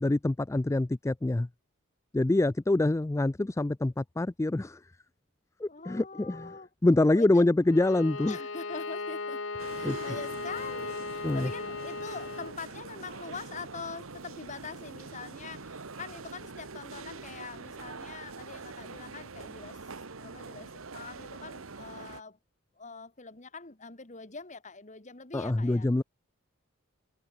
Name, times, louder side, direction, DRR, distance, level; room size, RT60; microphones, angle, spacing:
voice 1, 0.0-1.5 2.1-4.9 5.6-6.5 6.8-8.4 9.8-10.0 11.2-11.5 25.3-26.0, left 2 dB, 15° left, 0.3 m, -25 dB
voice 2, 5.7-6.7 7.1-7.4 8.3-9.4 9.7-19.8 20.2-22.4 22.8-25.9, left 4 dB, 35° left, 1.7 m, -44 dB
Bowed string instrument, 7.6-12.6, left 3 dB, 65° left, 1.4 m, -37 dB
sound 1, 9.6-22.2, right 4 dB, 80° right, 1.4 m, -44 dB
head